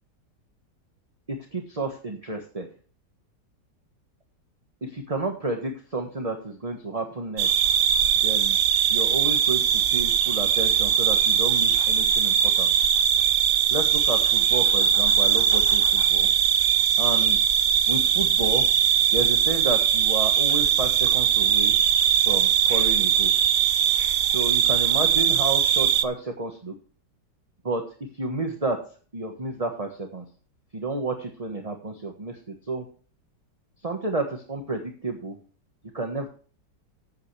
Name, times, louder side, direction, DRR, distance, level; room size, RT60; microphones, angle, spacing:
voice 1, 1.3-2.7 4.8-7.5 8.2-8.6 8.9-12.7 13.7-16.3 17.0-17.4 17.9-18.7 19.1-21.7 22.2-23.3 24.3-26.7 27.6-27.8 28.1-28.8 29.1-30.2 30.7-32.8 33.8-35.4 35.9-36.3, right 2 dB, 20° right, 4 dB, 1.3 m, -31 dB
sound 1, 7.4-26.0, right 8 dB, 55° right, 0.8 m, -21 dB
13.5 x 8.6 x 3.3 m, 0.42 s
omnidirectional pair, 1.9 m